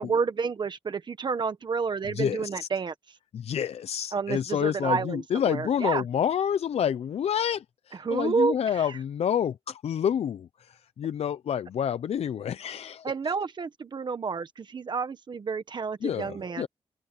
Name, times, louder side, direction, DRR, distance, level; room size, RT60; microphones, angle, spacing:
voice 1, 0.0-2.9 4.1-6.0 8.0-9.0 13.0-16.7, right 5 dB, 45° right, 1.3 m, -30 dB
voice 2, 2.1-2.7 3.3-13.1 16.0-16.7, left 9 dB, 80° left, 0.5 m, -28 dB
open air
wide cardioid pair, 155°, 11 cm